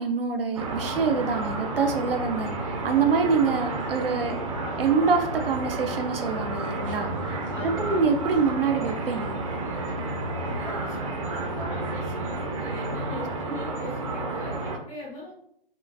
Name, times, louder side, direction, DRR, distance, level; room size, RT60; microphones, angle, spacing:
voice 1, 0.0-4.4 4.8-7.1 7.6-9.4, right 5 dB, 75° right, 5 dB, 0.7 m, -25 dB
sound 1, 0.6-14.8, right 2 dB, 35° right, 0.6 m, -31 dB
voice 2, 7.5-8.1 10.4-15.3, left 2 dB, 5° left, -9 dB, 0.3 m, -40 dB
5.6 x 2.4 x 2.6 m, 0.67 s
hypercardioid pair, 155°, 29 cm